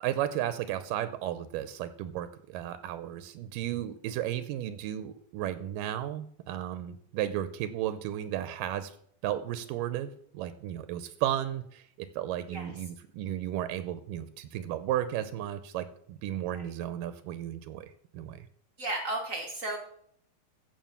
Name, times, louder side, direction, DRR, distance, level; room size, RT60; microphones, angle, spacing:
voice 1, 0.0-8.9 9.2-18.5, right 12 dB, 85° right, 12 dB, 2.3 m, -34 dB
voice 2, 18.8-19.8, right 2 dB, 70° right, 2 dB, 0.7 m, -34 dB
15.0 x 5.4 x 7.2 m, 0.66 s
omnidirectional pair, 3.9 m